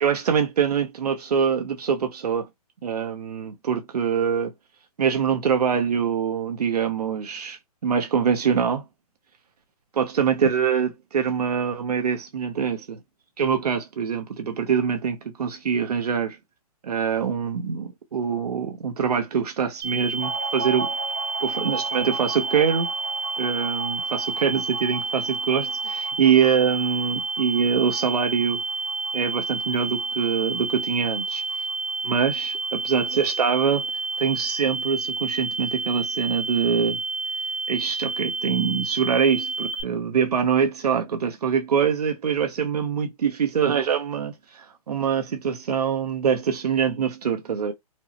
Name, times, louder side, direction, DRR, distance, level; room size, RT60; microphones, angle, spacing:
voice 1, 0.0-2.5 2.8-4.5 5.0-8.8 10.0-13.0 13.4-16.4 16.8-20.9 21.4-22.9 23.4-28.6 29.1-31.4 32.0-33.9 34.2-37.0 37.7-47.7, right 7 dB, 85° right, 0.8 m, -24 dB
sound 1, 19.8-39.8, right 3 dB, 40° right, 0.8 m, -30 dB
sound 2, 20.2-33.3 33.6-33.7 34.0-34.7, right 4 dB, 10° right, 0.3 m, -38 dB
4.4 x 2.0 x 2.8 m
hypercardioid pair, 180°, 20 cm